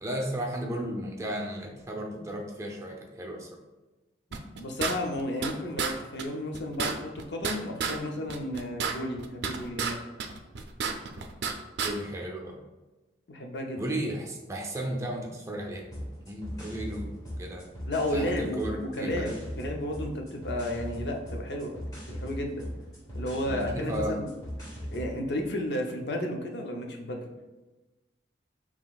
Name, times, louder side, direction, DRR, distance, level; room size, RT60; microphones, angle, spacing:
voice 1, 0.0-3.5 11.8-12.6 13.8-15.9 16.3-17.6 18.1-19.4 23.5-24.2, right 1 dB, 15° right, 0 dB, 0.5 m, -34 dB
sound 1, 4.3-5.5 5.8-5.9 6.2-6.3 6.5-8.0 8.3-9.9 10.2-11.5 11.8-11.9, right 5 dB, 70° right, 0.4 m, -31 dB
voice 2, 4.6-10.0 13.3-13.8 17.9-21.8 22.1-22.7 23.1-24.3 24.9-27.3, left 1 dB, 70° left, 2 dB, 0.6 m, -33 dB
sound 2, 15.8-25.1, equal, 20° left, 1.1 m, -39 dB
5.7 x 2.9 x 2.4 m, 1.1 s
head